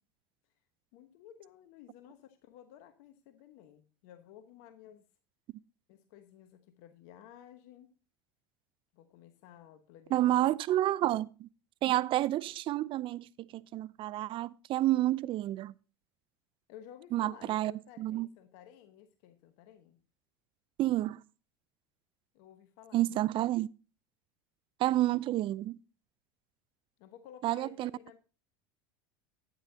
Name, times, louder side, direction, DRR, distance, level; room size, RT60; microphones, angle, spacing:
voice 1, 0.9-5.0 5.9-7.9 8.9-10.5 16.7-20.0 22.3-23.4 27.0-28.2, left 10 dB, 65° left, 1.1 m, -54 dB
voice 2, 10.1-11.5 11.8-15.7 17.1-17.7 18.0-18.3 20.8-21.2 22.9-23.7 24.8-25.8 27.4-27.9, right 15 dB, 45° right, 0.5 m, -29 dB
12.0 x 9.7 x 2.8 m
hypercardioid pair, 90°, 12 cm